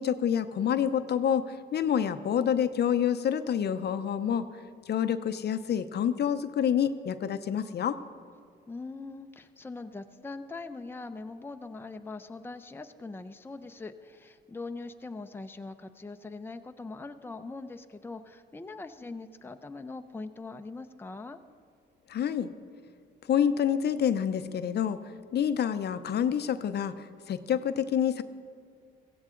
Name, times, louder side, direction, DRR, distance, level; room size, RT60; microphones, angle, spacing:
voice 1, 0.0-4.5 4.9-8.0 22.1-22.5 23.3-25.0 25.3-28.2, left 8 dB, 55° left, 11 dB, 0.7 m, -27 dB
voice 2, 8.7-21.4, left 3 dB, 10° left, 7 dB, 0.6 m, -42 dB
15.5 x 15.5 x 3.8 m, 2.2 s
cardioid pair, 90°, 20 cm